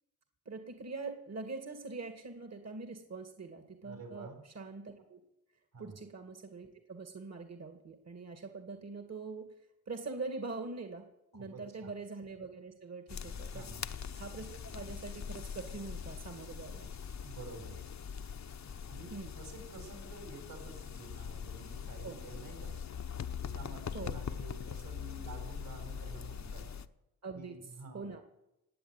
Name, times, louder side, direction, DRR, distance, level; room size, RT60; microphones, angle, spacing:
voice 1, 0.5-5.2 5.8-9.4 9.9-11.0 11.3-13.7 14.1-16.9 19.1-19.3 22.0-22.2 23.9-24.1 27.2-27.6 27.9-28.2, right 3 dB, 45° right, 6 dB, 2.2 m, -43 dB
voice 2, 3.8-4.4 5.7-6.0 11.3-11.9 13.4-13.9 16.9-17.8 18.8-22.8 23.4-26.7 27.3-28.2, right 3 dB, 60° right, 3 dB, 6.0 m, -50 dB
sound 1, 13.1-26.9, left 7 dB, 50° left, 0.9 m, -42 dB
18.0 x 7.9 x 9.7 m, 0.90 s
cardioid pair, 60°, 37 cm